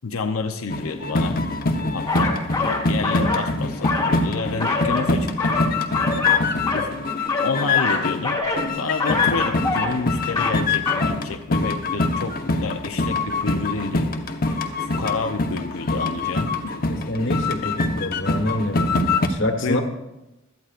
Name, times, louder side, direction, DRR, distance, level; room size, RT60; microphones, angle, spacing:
voice 1, 0.0-1.4 1.9-2.4 2.9-5.5 6.7-6.9 7.4-8.4 8.8-14.1 14.8-16.8 17.6-17.7 19.6-19.8, left 4 dB, 85° left, 5 dB, 0.7 m, -29 dB
sound 1, 0.7-8.3 8.6-19.3, left 3 dB, 45° left, 0.9 m, -24 dB
sound 2, 2.1-3.5 3.8-5.1 5.4-6.9 7.2-8.7 9.0-10.0 10.3-10.6 10.9-11.1, left 3 dB, 15° left, 1.7 m, -25 dB
voice 2, 17.1-18.9 19.3-19.8, left 1 dB, 60° left, 5 dB, 1.4 m, -26 dB
17.0 x 13.0 x 2.5 m, 0.98 s
head